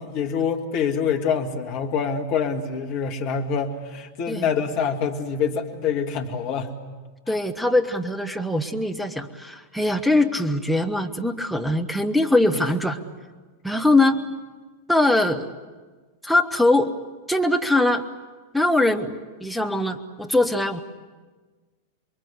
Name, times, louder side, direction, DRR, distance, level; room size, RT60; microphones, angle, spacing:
voice 1, 0.0-6.7 7.3-7.4 12.5-12.6, left 6 dB, 45° left, 4 dB, 2.1 m, -26 dB
voice 2, 7.3-13.0 13.6-14.2 14.9-15.5 16.2-16.9 17.3-18.0 18.5-20.8, left 2 dB, ahead, 8 dB, 1.6 m, -22 dB
28.5 x 23.0 x 8.3 m, 1.4 s
figure-of-eight pair, 90°, 0 cm